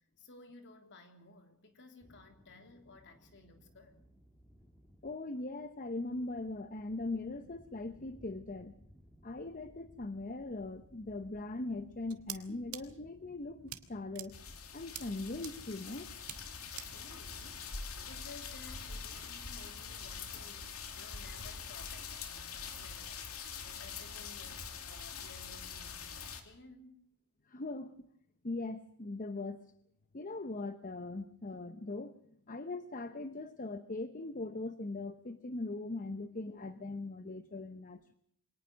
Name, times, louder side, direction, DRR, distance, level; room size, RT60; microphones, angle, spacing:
voice 1, 0.2-4.0 16.8-17.6 18.0-27.0, left 3 dB, 55° left, 5 dB, 3.4 m, -56 dB
sound 1, 2.0-20.1, equal, 10° left, 2.4 m, -61 dB
voice 2, 5.0-8.7 9.2-14.3 14.7-16.1 27.5-28.1 28.4-29.6 30.1-32.1 32.5-38.1, left 2 dB, 35° left, 11 dB, 0.9 m, -40 dB
sound 2, 12.1-12.4 12.7-12.8 13.7-13.8 14.2-14.3 15.0-15.1 15.4-15.5 16.3-16.4 16.8-16.9, right 13 dB, 70° right, 1.9 m, -42 dB
sound 3, 14.3-26.4, left 6 dB, 70° left, 2.7 m, -44 dB
24.0 x 19.0 x 6.4 m, 0.68 s
head